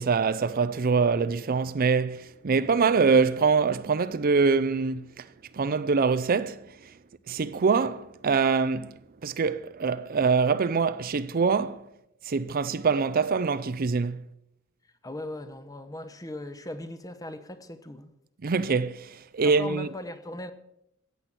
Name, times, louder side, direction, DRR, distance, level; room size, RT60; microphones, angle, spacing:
voice 1, 0.0-5.3 5.5-6.7 7.3-8.9 9.2-11.9 12.2-14.2 18.4-19.9, right 5 dB, 40° right, 0.5 m, -24 dB
voice 2, 15.0-18.1 19.4-20.5, left 1 dB, 15° left, 1.0 m, -39 dB
15.0 x 8.5 x 7.3 m
head